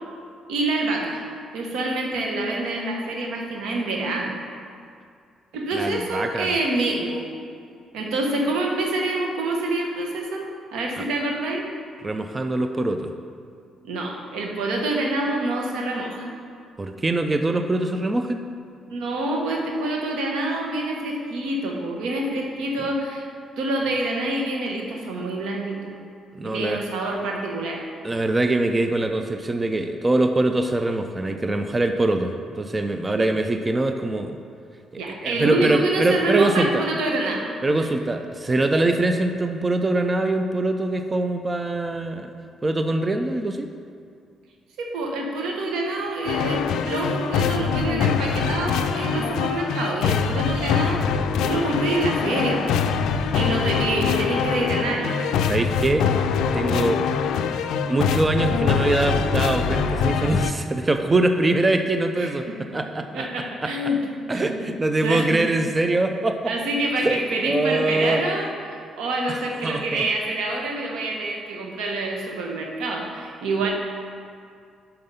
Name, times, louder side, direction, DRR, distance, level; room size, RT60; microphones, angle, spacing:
voice 1, 0.5-1.2 1.5-4.3 5.5-7.2 7.9-11.7 13.8-16.3 18.9-23.3 23.6-25.8 26.4-27.8 33.1-33.3 35.0-37.4 44.8-52.8 53.3-55.2 62.1-62.6 63.1-64.0 64.3-64.7 65.0-65.6 66.5-73.7, right 2 dB, 85° right, 0 dB, 1.0 m, -26 dB
voice 2, 5.7-6.5 12.0-13.1 16.8-18.4 26.4-26.8 28.0-34.4 34.9-36.8 37.6-42.3 42.6-43.7 55.5-56.1 56.5-57.1 57.9-63.3 63.6-63.7 64.3-66.5 67.0-67.2 67.5-68.2 69.3-70.0 73.6-73.7, right 2 dB, 25° right, 6 dB, 0.4 m, -23 dB
sound 1, 46.3-60.5, left 6 dB, 85° left, 0.3 m, -23 dB
5.7 x 5.2 x 5.5 m, 2.3 s
cardioid pair, 90°, 0 cm